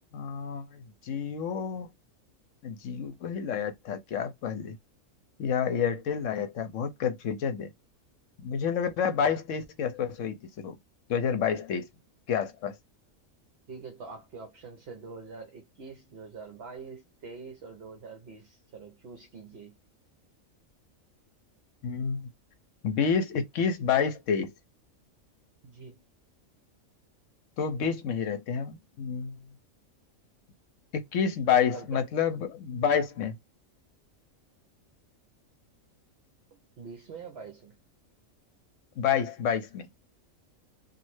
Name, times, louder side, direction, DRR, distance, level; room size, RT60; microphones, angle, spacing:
voice 1, 0.1-1.9 2.6-4.8 5.4-7.7 8.4-10.8 11.1-11.9 12.3-12.8 21.8-22.3 22.8-24.5 27.6-29.3 30.9-33.4 39.0-39.9, left 7 dB, 70° left, 0.9 m, -29 dB
voice 2, 13.7-19.7 25.6-26.0 31.5-32.1 36.5-37.7, right 4 dB, 55° right, 0.9 m, -45 dB
3.1 x 2.5 x 3.1 m
omnidirectional pair, 1.4 m